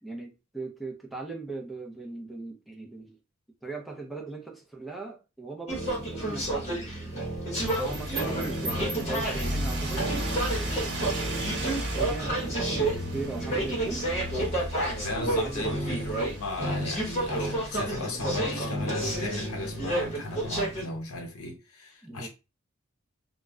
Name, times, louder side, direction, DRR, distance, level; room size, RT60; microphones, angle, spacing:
voice 1, 0.0-3.2 3.6-7.1 7.7-10.7 11.7-14.0 15.2-15.7 22.0-22.3, right 3 dB, ahead, 0.5 m, -39 dB
sound 1, 5.7-20.8, right 1 dB, 30° left, 0.9 m, -30 dB
sound 2, 7.6-18.0, equal, 55° right, 1.1 m, -35 dB
voice 2, 15.0-22.3, left 2 dB, 80° left, 0.8 m, -36 dB
2.1 x 2.1 x 3.5 m
head